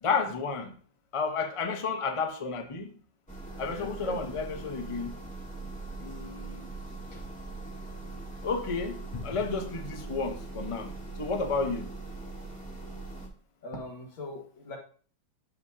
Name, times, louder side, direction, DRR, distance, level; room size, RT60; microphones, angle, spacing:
voice 1, 0.0-0.7 1.1-2.9 3.6-5.1 6.0-6.7 8.4-10.9 11.2-11.9, left 4 dB, 50° left, 0.4 m, -31 dB
sound 1, 3.3-13.3, right 3 dB, 5° left, 1.5 m, -41 dB
voice 2, 3.7-4.2 7.1-7.3 13.6-14.8, left 2 dB, 80° left, 2.5 m, -41 dB
13.0 x 4.9 x 2.8 m
omnidirectional pair, 2.1 m